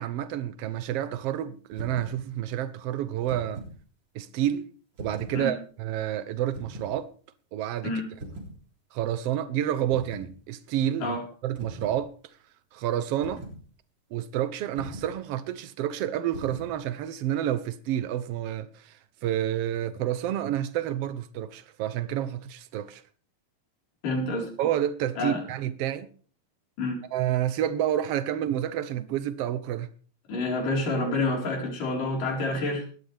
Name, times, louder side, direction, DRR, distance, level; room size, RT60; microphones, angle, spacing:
voice 1, 0.0-3.6 4.1-4.7 5.0-7.1 7.5-7.9 8.9-11.2 11.4-12.1 12.7-13.4 14.1-23.0 24.6-26.1 27.1-29.9, right 11 dB, 85° right, 1.3 m, -29 dB
sound 1, 1.7-2.2 3.1-3.8 4.9-5.4 6.5-6.9 8.2-8.6 9.9-10.3 11.6-12.0 13.2-13.6 14.8-15.2 16.3-16.7, right 1 dB, 35° right, 4.1 m, -40 dB
voice 2, 24.0-24.5 25.2-25.4 26.8-27.0 30.3-32.9, left 2 dB, 75° left, 6.0 m, -28 dB
19.0 x 13.5 x 3.5 m
omnidirectional pair, 3.8 m